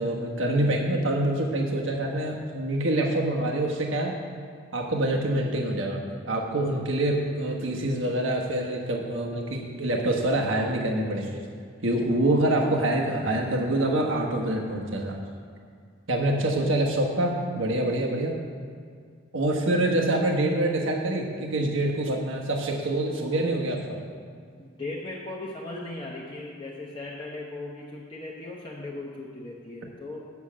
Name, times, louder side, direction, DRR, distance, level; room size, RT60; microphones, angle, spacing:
voice 1, 0.0-4.1 4.7-6.0 6.3-11.4 11.8-15.2 16.1-18.4 19.3-24.0, right 1 dB, 75° right, 0 dB, 1.3 m, -26 dB
voice 2, 24.6-30.2, left 2 dB, 25° left, -4 dB, 0.9 m, -37 dB
8.1 x 7.1 x 7.3 m, 2.1 s
head